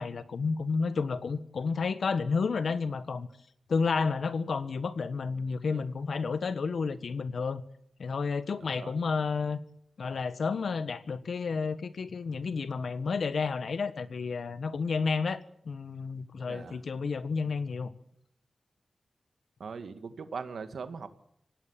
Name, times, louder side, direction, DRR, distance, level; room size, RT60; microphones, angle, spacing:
voice 1, 0.0-3.3 3.7-7.6 8.0-9.6 10.0-17.9, left 5 dB, 85° left, 12 dB, 1.5 m, -31 dB
voice 2, 8.6-8.9 16.5-16.8 19.6-21.1, right 5 dB, 85° right, 9 dB, 2.0 m, -40 dB
26.0 x 17.5 x 7.5 m, 0.74 s
cardioid pair, 60°, 0 cm